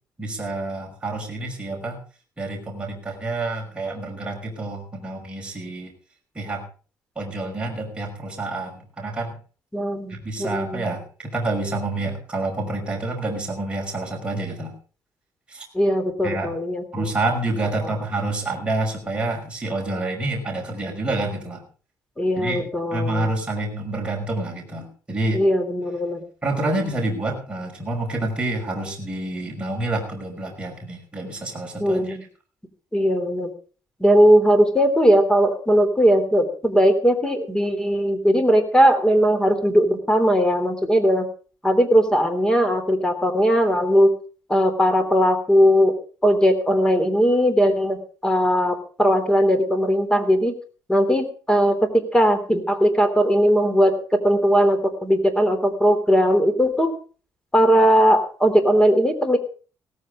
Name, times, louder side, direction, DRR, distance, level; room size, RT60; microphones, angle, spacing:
voice 1, 0.2-2.0 2.4-5.9 6.3-6.6 7.2-9.4 10.1-14.7 15.5-15.7 16.2-16.5 16.9-21.6 22.4-22.6 22.9-25.4 26.4-32.2, right 2 dB, 15° right, -1 dB, 5.6 m, -28 dB
voice 2, 9.7-10.9 15.7-17.1 22.2-23.3 25.3-26.2 31.8-32.2 32.9-33.5 34.0-41.3 41.6-44.1 44.5-45.9 46.2-48.0 48.2-50.6 50.9-53.9 54.2-56.9 57.5-59.4, equal, 10° left, 8 dB, 3.3 m, -19 dB
17.5 x 14.5 x 3.8 m, 0.39 s
cardioid pair, 130°, 7 cm